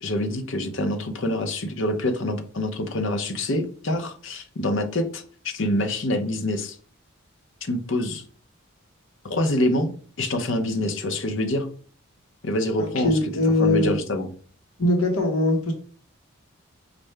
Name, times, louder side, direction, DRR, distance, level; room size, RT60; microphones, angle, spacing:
voice 1, 0.0-6.8 7.6-8.2 9.2-9.9 10.2-11.7 12.4-13.3 13.6-14.3, left 1 dB, 65° left, 7 dB, 0.7 m, -26 dB
voice 2, 12.8-14.0 14.8-15.7, left 1 dB, 90° left, 2 dB, 1.1 m, -21 dB
5.5 x 2.5 x 3.3 m, 0.42 s
head